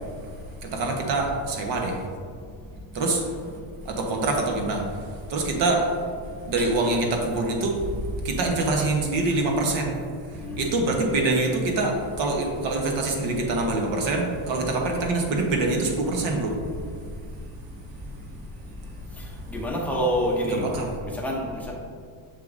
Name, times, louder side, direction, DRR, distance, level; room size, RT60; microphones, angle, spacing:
voice 1, 0.6-2.0 2.9-3.2 3.8-4.8 5.3-5.8 6.4-7.8 8.2-9.9 10.6-16.5 20.4-20.9, right 2 dB, 60° right, 1 dB, 1.1 m, -25 dB
voice 2, 19.5-20.6 21.0-21.7, equal, 5° left, -3 dB, 0.6 m, -27 dB
6.8 x 6.4 x 2.6 m, 2.1 s
cardioid pair, 170°, 49 cm